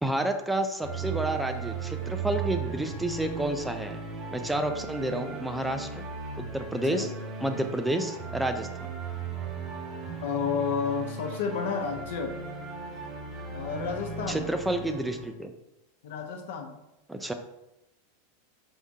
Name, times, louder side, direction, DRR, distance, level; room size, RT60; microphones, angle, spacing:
voice 1, 0.0-4.0 4.3-6.1 6.4-7.1 7.4-8.9 14.3-15.5 17.1-17.3, right 1 dB, 5° right, 6 dB, 0.3 m, -30 dB
sound 1, 0.8-15.3, right 5 dB, 30° right, 0.7 m, -37 dB
voice 2, 10.2-12.4 13.5-14.4 16.0-16.8, left 5 dB, 75° left, 3 dB, 0.8 m, -31 dB
4.6 x 3.6 x 2.7 m, 0.92 s
supercardioid pair, 140°, 0 cm